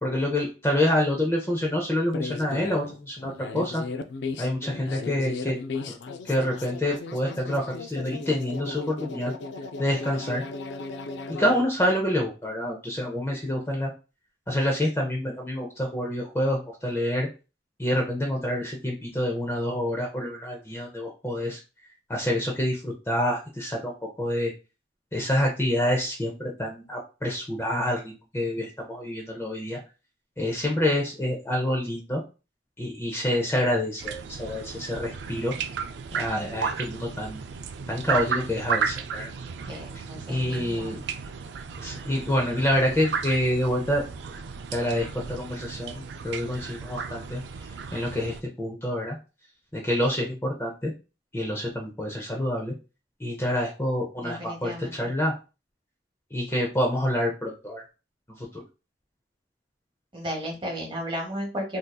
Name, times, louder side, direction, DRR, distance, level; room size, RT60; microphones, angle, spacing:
voice 1, 0.0-3.8 4.4-5.6 5.9-6.0 6.2-9.3 9.8-10.4 11.4-13.9 14.5-17.3 17.8-21.6 22.1-24.5 25.1-29.8 30.4-32.2 32.8-35.5 36.1-37.4 37.9-39.3 40.3-41.0 41.8-44.0 44.7-45.9 46.2-47.4 47.9-49.2 49.7-50.9 51.3-52.7 53.2-55.3 56.3-57.8 58.4-58.6, left 1 dB, 15° left, -1 dB, 0.6 m, -27 dB
sound 1, 2.1-11.6, left 4 dB, 65° left, 0.4 m, -36 dB
sound 2, 34.0-48.4, right 6 dB, 65° right, 0.3 m, -34 dB
voice 2, 39.7-41.0 54.2-55.1 60.1-61.8, equal, 25° right, 1 dB, 1.1 m, -34 dB
3.7 x 2.7 x 2.3 m, 0.31 s
head